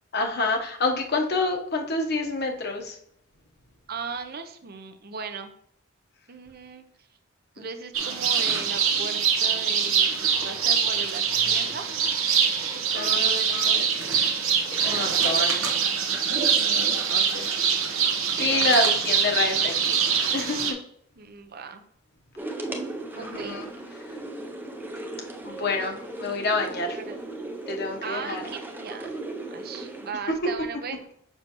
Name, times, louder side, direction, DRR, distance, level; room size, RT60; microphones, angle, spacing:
voice 1, 0.1-3.0 7.6-7.7 12.9-13.8 14.2-14.3 14.7-15.7 16.9-17.4 18.3-20.8 23.1-23.7 25.4-27.0 27.7-28.4, left 3 dB, 50° left, 2 dB, 1.0 m, -28 dB
voice 2, 3.9-5.5 6.3-6.8 7.5-11.9 12.9-13.9 14.2-14.3 18.3-18.8 21.2-21.8 23.2-23.6 27.0-27.2 28.0-29.1 29.5-31.0, right 5 dB, 50° right, 8 dB, 0.6 m, -37 dB
sound 1, 7.9-20.7, right 7 dB, 80° right, 0.9 m, -24 dB
sound 2, 22.4-30.1, right 2 dB, 10° right, 0.5 m, -37 dB
6.9 x 5.6 x 3.0 m, 0.68 s
head